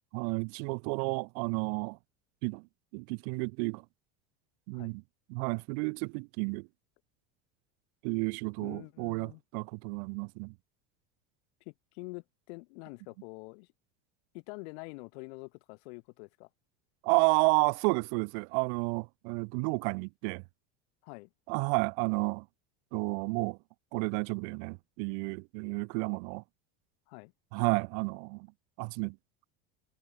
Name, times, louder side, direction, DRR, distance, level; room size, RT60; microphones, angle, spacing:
voice 1, 0.1-2.0 2.4-2.7 2.9-3.8 4.7-5.0 5.3-6.7 8.0-10.5 17.0-20.4 21.5-22.5 22.9-23.6 23.9-26.4 27.5-28.5 28.8-29.2, right 40 dB or more, 65° right, 2.5 m, -31 dB
voice 2, 8.6-9.4 11.7-13.7 14.3-16.5 21.0-21.3 27.1-27.3, left 30 dB, 70° left, 7.6 m, -46 dB
cardioid pair, 160°, 34 cm